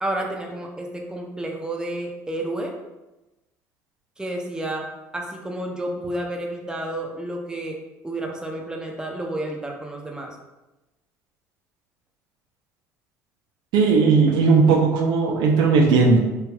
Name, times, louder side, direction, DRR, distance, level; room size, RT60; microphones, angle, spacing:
voice 1, 0.0-2.7 4.2-7.8 8.0-10.4, right 1 dB, 10° right, 1 dB, 0.5 m, -30 dB
voice 2, 13.7-16.2, right 4 dB, 70° right, 1 dB, 0.5 m, -17 dB
2.4 x 2.2 x 3.2 m, 1.0 s
hypercardioid pair, 65°, 8 cm